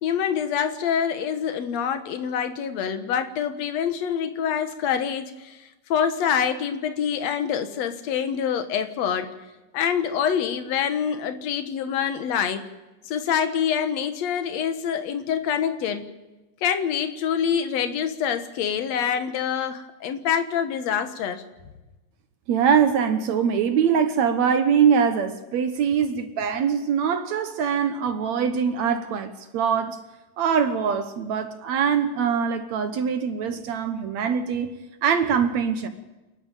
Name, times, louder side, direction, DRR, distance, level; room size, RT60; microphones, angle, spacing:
voice 1, 0.0-9.3 9.7-12.7 13.1-16.1 16.6-21.4, left 8 dB, 60° left, 2.2 m, -26 dB
voice 2, 22.5-30.0 30.4-34.7 35.0-35.9, right 7 dB, 65° right, 2.0 m, -23 dB
28.5 x 11.0 x 9.0 m
omnidirectional pair, 4.1 m